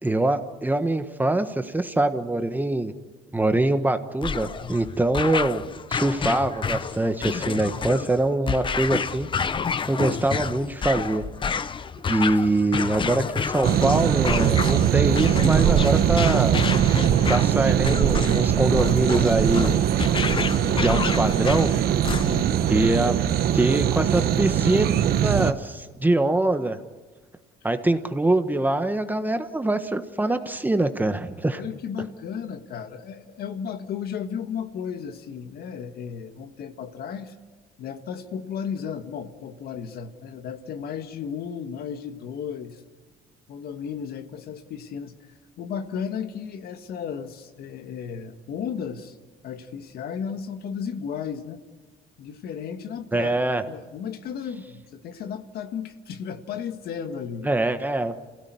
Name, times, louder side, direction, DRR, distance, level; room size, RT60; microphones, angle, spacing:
voice 1, 0.0-2.9 3.3-5.6 5.9-9.3 9.9-11.2 12.1-16.6 17.3-19.7 20.8-21.7 22.7-23.1 23.5-24.9 25.2-26.8 27.6-31.6 53.1-53.6 57.4-58.1, right 2 dB, 10° right, 8 dB, 1.4 m, -24 dB
sound 1, 4.2-22.6, left 6 dB, 30° left, 0.8 m, -29 dB
sound 2, 13.6-25.5, right 10 dB, 65° right, 1.2 m, -21 dB
voice 2, 22.1-22.5 31.6-37.3 37.8-42.8 43.5-45.1 45.6-49.2 49.4-51.6 52.2-53.3 53.7-57.5, left 7 dB, 65° left, 8 dB, 1.8 m, -34 dB
27.5 x 17.0 x 9.6 m, 1.3 s
cardioid pair, 110°, 17 cm